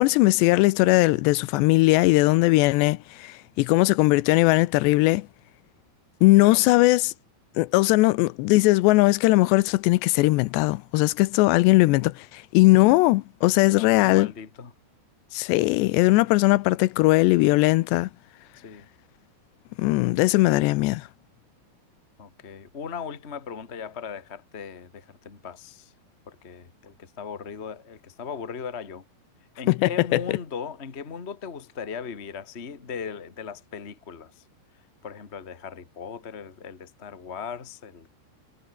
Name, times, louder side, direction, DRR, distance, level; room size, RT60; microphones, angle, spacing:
voice 1, 0.0-5.3 6.2-7.1 7.6-14.3 15.3-18.1 19.8-21.1 29.7-30.2, left 20 dB, 85° left, 2.9 m, -19 dB
voice 2, 6.4-6.8 13.7-14.7 18.5-18.9 22.2-25.9 26.3-29.0 29.6-34.4 35.0-38.1, left 6 dB, 65° left, 0.6 m, -38 dB
omnidirectional pair, 4.9 m